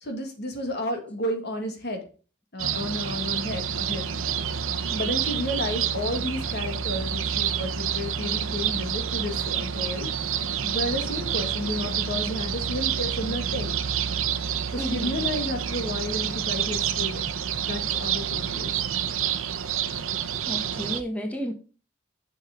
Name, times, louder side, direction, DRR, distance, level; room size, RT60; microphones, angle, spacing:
voice 1, 0.0-2.1 2.5-4.1 4.9-13.8 14.7-17.2 17.7-18.8, left 1 dB, 55° left, 2.2 m, -32 dB
sound 1, 2.6-21.0, right 8 dB, 75° right, 0.8 m, -28 dB
voice 2, 14.8-15.2 20.5-21.6, equal, 5° left, 1.1 m, -32 dB
7.9 x 6.4 x 3.9 m
head